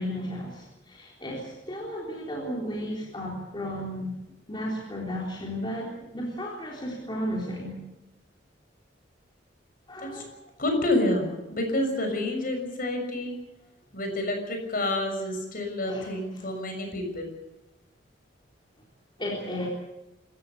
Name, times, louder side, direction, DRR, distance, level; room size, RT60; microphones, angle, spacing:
voice 1, 0.0-4.2 4.5-7.8 9.9-10.3 15.8-16.5 19.2-19.7, equal, 25° left, -3 dB, 3.9 m, -34 dB
voice 2, 10.6-13.3 13.9-17.3, left 1 dB, 50° left, 4 dB, 6.7 m, -28 dB
26.0 x 15.0 x 8.5 m, 0.91 s
head